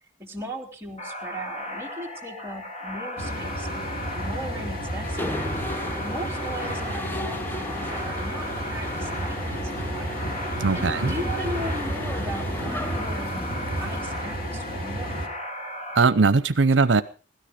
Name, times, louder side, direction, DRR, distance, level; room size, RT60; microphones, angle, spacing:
voice 1, 0.2-3.9 4.1-5.4 5.7-10.2 10.5-15.2, equal, 15° right, 2.9 m, -37 dB
sound 1, 1.0-16.0, left 1 dB, 35° left, 3.3 m, -36 dB
sound 2, 3.2-15.3, equal, 55° left, 2.5 m, -32 dB
Mechanisms, 5.0-14.0, equal, 10° left, 0.7 m, -36 dB
voice 2, 10.6-11.1 16.0-17.0, right 4 dB, 85° right, 0.7 m, -20 dB
17.0 x 13.0 x 5.1 m
head